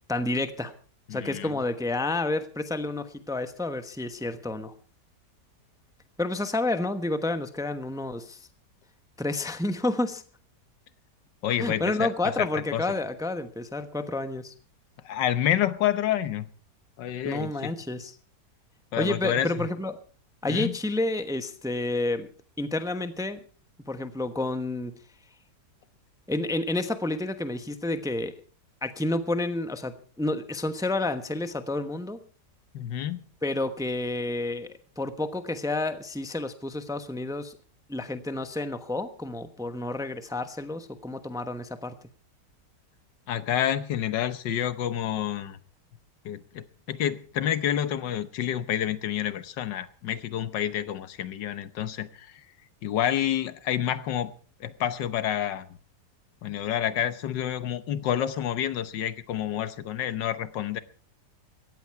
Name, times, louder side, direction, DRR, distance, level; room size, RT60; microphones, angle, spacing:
voice 1, 0.1-0.7 1.1-4.7 6.2-8.5 9.2-10.2 11.6-14.5 17.2-18.1 19.0-19.9 20.4-22.3 22.6-23.4 23.9-24.9 26.3-28.3 28.8-32.2 33.4-37.5 37.9-41.9, left 2 dB, 5° right, 9 dB, 0.8 m, -30 dB
voice 2, 1.1-1.5 11.4-12.1 12.4-12.5 12.7-12.8 15.0-16.5 17.0-17.7 18.9-19.7 20.5-20.7 32.7-33.2 43.3-45.6 46.2-52.4 52.8-54.3 54.6-55.6 56.4-60.8, left 10 dB, 85° left, 13 dB, 1.6 m, -28 dB
17.5 x 14.0 x 4.7 m, 0.41 s
omnidirectional pair, 1.9 m